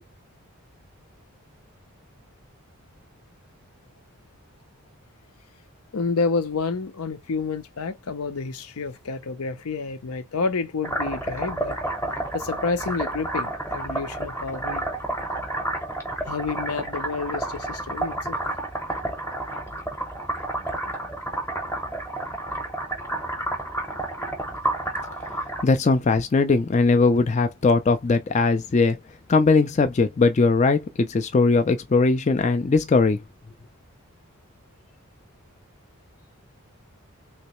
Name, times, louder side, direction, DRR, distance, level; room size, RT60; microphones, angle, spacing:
voice 1, 5.9-11.8 12.3-14.8 16.2-18.4, left 4 dB, 80° left, 0.6 m, -29 dB
sound 1, 10.8-25.6, right 2 dB, 10° left, 0.8 m, -30 dB
voice 2, 25.6-29.0 29.3-33.2, left 3 dB, 30° left, 0.3 m, -20 dB
3.2 x 3.0 x 2.9 m
head